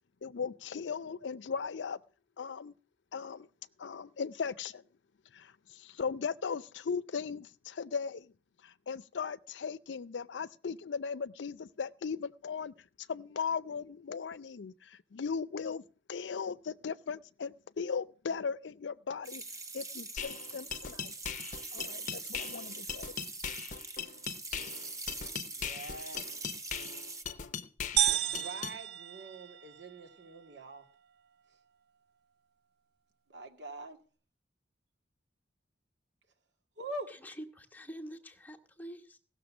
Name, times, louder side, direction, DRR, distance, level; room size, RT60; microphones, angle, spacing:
voice 1, 0.2-2.0 2.4-2.7 3.1-3.5 3.8-4.8 5.3-8.3 8.6-12.7 13.1-15.8 16.1-19.4 19.7-21.1 21.7-23.1, left 5 dB, 85° left, 0.5 m, -38 dB
sound 1, 19.2-27.2, right 3 dB, 20° right, 1.0 m, -43 dB
sound 2, 20.2-28.8, left 7 dB, 45° left, 0.7 m, -40 dB
voice 2, 25.5-26.3 28.1-30.9 33.3-34.0 36.8-37.1, right 2 dB, 85° right, 2.0 m, -44 dB
sound 3, 28.0-29.9, right 11 dB, 65° right, 0.5 m, -31 dB
voice 3, 37.1-39.2, equal, 10° left, 1.1 m, -46 dB
16.5 x 6.6 x 6.0 m
head